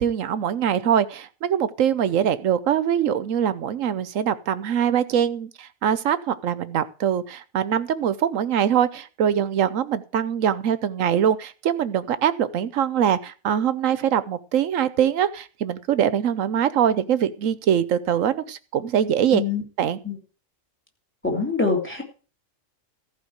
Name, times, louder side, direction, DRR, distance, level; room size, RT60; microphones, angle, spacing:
voice 1, 0.0-19.4 19.8-20.0, right 9 dB, 85° right, 15 dB, 1.2 m, -23 dB
voice 2, 19.3-19.6 20.0-20.2 21.2-22.0, left 4 dB, 10° left, 2 dB, 3.1 m, -24 dB
14.5 x 5.1 x 8.0 m, 0.37 s
omnidirectional pair, 1.3 m